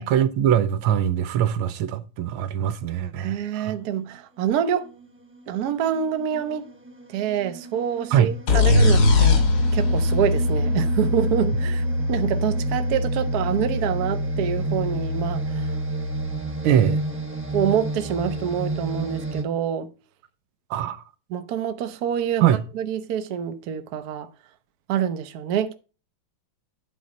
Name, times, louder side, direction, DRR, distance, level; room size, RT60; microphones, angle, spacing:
voice 1, 0.0-3.8 8.1-8.3 16.6-17.0 20.7-21.0 22.4-22.6, right 10 dB, 80° right, 1.5 m, -22 dB
voice 2, 3.2-4.9 5.5-6.6 7.1-9.4 9.7-15.7 17.5-19.9 21.3-22.5 22.7-24.3 24.9-25.7, right 9 dB, 60° right, 1.1 m, -26 dB
sound 1, 4.9-5.1 5.7-19.4, right 2 dB, 20° right, 0.3 m, -33 dB
sound 2, 8.5-12.2, left 3 dB, 70° left, 2.8 m, -21 dB
Piano, 8.7-16.4, left 1 dB, 85° left, 2.7 m, -25 dB
9.4 x 4.1 x 5.0 m
omnidirectional pair, 2.3 m